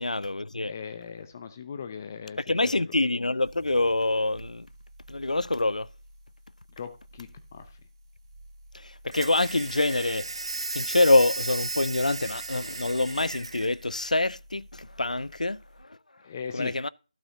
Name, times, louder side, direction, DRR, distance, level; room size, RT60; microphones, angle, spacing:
voice 1, 0.0-0.7 2.4-4.7 5.1-5.9 8.7-16.0 16.5-16.9, left 2 dB, 85° left, 0.3 m, -26 dB
voice 2, 0.6-2.7 6.8-7.8 16.2-16.7, left 6 dB, 20° left, 0.5 m, -39 dB
sound 1, 3.2-15.9, right 1 dB, 30° right, 1.9 m, -52 dB
sound 2, 9.1-13.7, right 3 dB, 50° right, 0.7 m, -35 dB
12.0 x 6.9 x 2.8 m
figure-of-eight pair, 165°, 4 cm